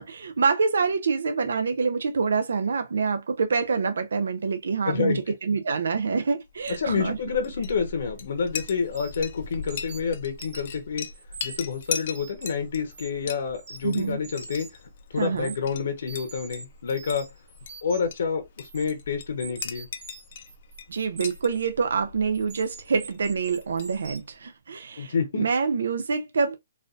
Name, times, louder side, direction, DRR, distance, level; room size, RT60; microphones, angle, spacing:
voice 1, 0.0-7.2 13.8-14.2 15.1-15.5 20.9-26.5, right 5 dB, 80° right, 0.5 m, -26 dB
voice 2, 4.8-5.2 6.8-11.1 11.4-14.7 15.1-17.3 17.8-19.9 25.0-25.5, left 6 dB, 55° left, 0.9 m, -28 dB
Chink clink, 6.5-24.3, left 6 dB, 40° left, 0.5 m, -40 dB
sound 1, 8.9-9.3 9.6-10.8 11.1-12.5 12.9-13.3 13.5-14.9 15.2-15.6 16.1-18.2 18.6-18.8 19.4-21.6 22.3-24.2, right 4 dB, 30° right, 1.0 m, -44 dB
4.1 x 2.5 x 2.4 m
hypercardioid pair, 175°, 0 cm